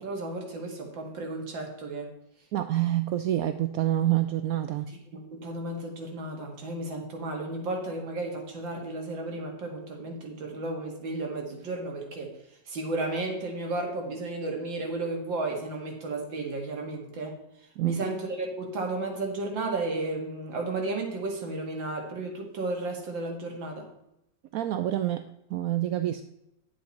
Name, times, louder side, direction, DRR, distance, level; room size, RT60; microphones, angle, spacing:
voice 1, 0.0-2.1 4.9-12.3 12.7-17.4 17.8-23.9, right 2 dB, 90° right, 2 dB, 2.5 m, -33 dB
voice 2, 2.5-4.9 17.8-18.0 24.5-25.2 25.5-26.2, right 13 dB, 75° right, 9 dB, 0.8 m, -27 dB
10.0 x 7.7 x 4.1 m, 0.85 s
omnidirectional pair, 2.0 m